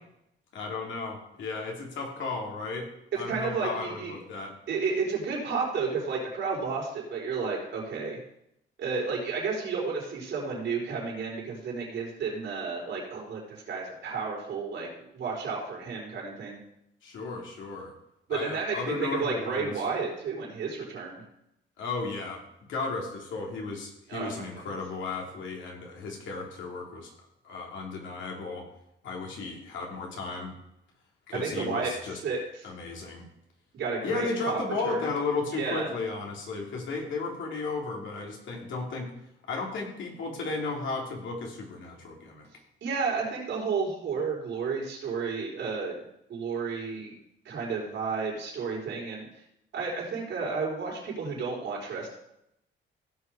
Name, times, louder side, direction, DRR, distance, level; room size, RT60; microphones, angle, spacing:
voice 1, 0.5-2.9 3.1-4.5 17.0-17.9 18.3-19.8 21.8-27.1 27.4-28.7 29.0-30.5 31.3-32.2 32.6-33.2 34.0-39.1 39.5-42.5, left 3 dB, 70° left, 0 dB, 3.1 m, -34 dB
voice 2, 3.3-4.1 4.7-8.2 8.8-16.6 18.3-21.2 24.1-24.8 31.3-32.7 33.7-35.1 35.5-35.9 42.8-45.9 46.3-47.1 47.4-49.3 49.7-52.1, right 5 dB, 70° right, -2 dB, 4.3 m, -32 dB
16.0 x 5.5 x 4.8 m, 0.81 s
cardioid pair, 90°, 20 cm